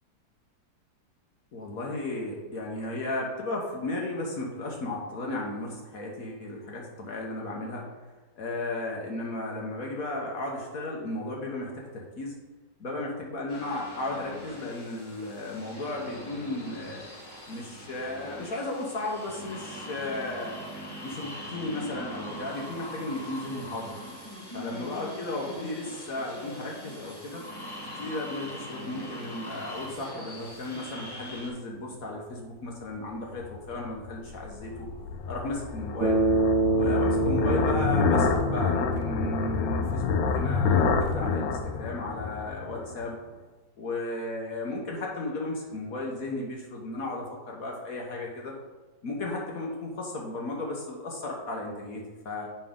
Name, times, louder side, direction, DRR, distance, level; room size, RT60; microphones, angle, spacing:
voice 1, 1.5-7.9 8.4-12.4 12.8-17.0 17.5-20.6 21.0-23.9 24.5-27.5 28.0-34.9 35.2-36.2 36.7-43.2 43.8-48.5 49.0-52.5, left 2 dB, 55° left, -1 dB, 1.3 m, -34 dB
sound 1, 13.5-31.5, left 1 dB, 15° left, 1.3 m, -42 dB
sound 2, 33.5-43.0, left 5 dB, 80° left, 1.3 m, -28 dB
Bass guitar, 36.0-40.2, right 3 dB, 85° right, 2.3 m, -27 dB
7.8 x 5.7 x 3.6 m, 1.3 s
omnidirectional pair, 1.9 m